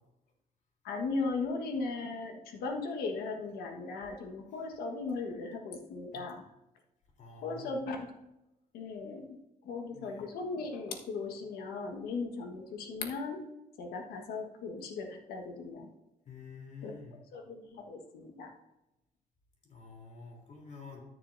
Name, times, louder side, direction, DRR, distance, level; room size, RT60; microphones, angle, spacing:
voice 1, 0.8-6.4 7.4-8.0 8.7-9.4 9.6-13.4 13.8-15.9 16.8-16.9 17.3-18.5, left 3 dB, 90° left, 4 dB, 1.5 m, -37 dB
voice 2, 7.2-7.8 9.9-10.3 16.3-17.2 19.6-21.0, left 5 dB, 50° left, -1 dB, 3.4 m, -49 dB
13.5 x 6.6 x 2.7 m, 0.94 s
cardioid pair, 100°, 15 cm